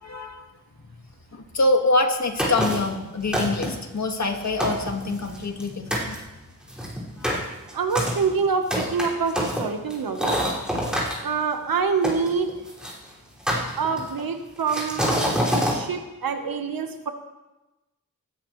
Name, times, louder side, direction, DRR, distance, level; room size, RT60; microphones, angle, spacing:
voice 1, 0.0-0.5 1.3-6.2 7.2-7.4, left 2 dB, 55° left, 3 dB, 2.0 m, -25 dB
sound 1, 2.4-2.9 3.3-3.9 4.3-4.4 4.6-5.6 5.9-6.2 6.7-11.2 12.0-12.9 13.5-14.2 14.7-15.8, equal, ahead, 5.5 m, -26 dB
voice 2, 7.7-10.4 11.2-12.5 13.8-17.1, right 5 dB, 85° right, 6 dB, 1.3 m, -26 dB
19.5 x 13.5 x 3.2 m, 1.1 s
wide cardioid pair, 75°, 34 cm